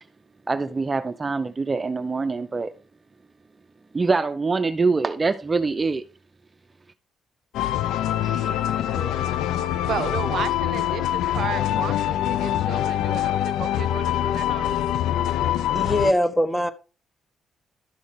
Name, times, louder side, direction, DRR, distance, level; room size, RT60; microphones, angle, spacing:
voice 1, 0.5-2.7 3.9-6.0, right 4 dB, 30° right, 0.6 m, -24 dB
sound 1, 7.5-16.1, left 12 dB, 90° left, 0.5 m, -24 dB
voice 2, 8.2-14.8, right 9 dB, 65° right, 0.6 m, -34 dB
voice 3, 8.9-9.4 15.7-16.7, left 1 dB, 10° left, 1.3 m, -23 dB
12.0 x 6.3 x 3.6 m
cardioid pair, 85°, 0 cm